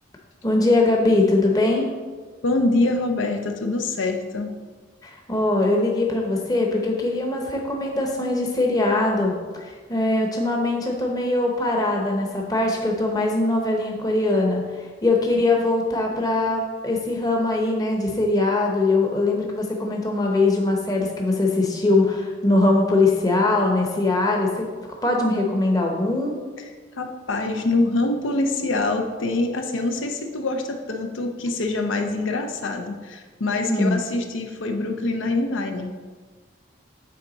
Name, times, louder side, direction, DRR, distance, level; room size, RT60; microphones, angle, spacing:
voice 1, 0.4-1.9 5.0-24.7 25.0-26.4 33.7-34.0, left 2 dB, 20° left, 0 dB, 0.8 m, -21 dB
voice 2, 2.4-4.5 27.0-35.9, left 2 dB, 85° left, 4 dB, 0.6 m, -25 dB
8.6 x 3.5 x 3.9 m, 1.4 s
head